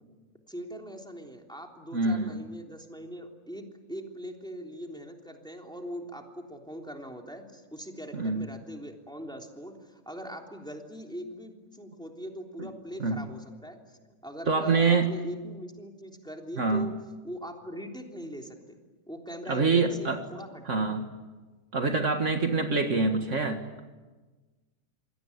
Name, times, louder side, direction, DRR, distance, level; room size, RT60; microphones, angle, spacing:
voice 1, 0.5-16.9 17.2-18.8 19.1-21.0, equal, 5° left, 2 dB, 3.3 m, -41 dB
voice 2, 1.9-2.4 8.1-8.5 12.6-12.7 13.0-13.2 14.5-15.1 16.6-16.9 19.5-20.2 20.7-21.1 21.7-23.8, right 4 dB, 55° right, 5 dB, 2.0 m, -25 dB
27.5 x 22.0 x 9.7 m, 1.3 s
omnidirectional pair, 1.5 m